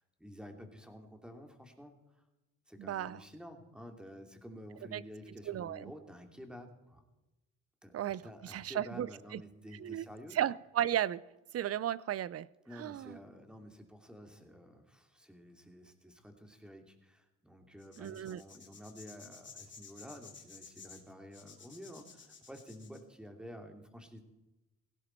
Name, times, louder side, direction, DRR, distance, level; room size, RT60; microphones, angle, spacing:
voice 1, 0.2-1.9 2.7-7.0 7.8-7.9 8.2-10.4 12.6-24.2, equal, 5° right, 4 dB, 2.7 m, -51 dB
voice 2, 2.8-3.2 4.9-5.0 5.5-5.9 7.9-9.4 9.8-10.0 10.3-11.2 11.5-12.5 12.7-13.2 18.0-18.4, right 11 dB, 50° right, 21 dB, 0.6 m, -35 dB
sound 1, 17.8-23.0, left 5 dB, 40° left, 2.8 m, -54 dB
17.0 x 16.5 x 4.5 m, 1.0 s
cardioid pair, 90°, 30 cm